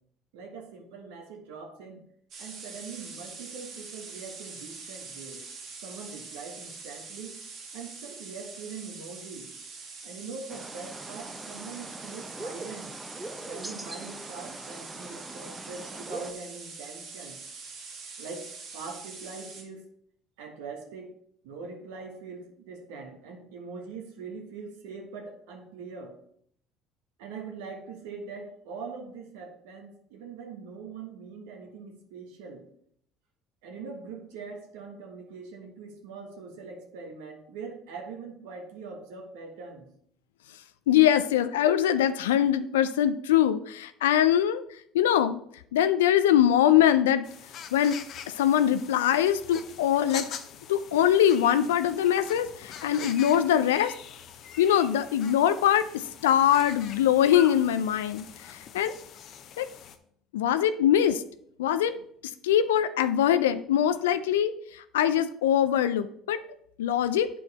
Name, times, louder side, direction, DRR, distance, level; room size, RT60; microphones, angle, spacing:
voice 1, 0.3-2.0 2.4-5.4 5.8-7.4 7.7-9.5 10.0-12.9 13.4-17.4 18.2-19.9 20.4-21.1 21.4-26.2 27.2-32.7 33.6-39.9, right 4 dB, 75° right, 3 dB, 1.3 m, -42 dB
sound 1, 2.3-19.6, right 4 dB, 60° right, 2.1 m, -44 dB
sound 2, 10.5-16.3, right 2 dB, 15° right, 0.8 m, -42 dB
voice 2, 40.9-44.6 44.9-45.4 45.7-47.3 47.7-48.0 48.3-50.3 50.7-53.9 54.6-59.0 59.6-59.7 60.3-61.2 61.6-62.0 62.4-66.4 66.8-67.3, left 10 dB, 85° left, 11 dB, 0.3 m, -23 dB
sound 3, 47.2-60.0, left 8 dB, 55° left, 0.7 m, -43 dB
8.7 x 4.6 x 4.1 m, 0.67 s
hypercardioid pair, 65°, 0 cm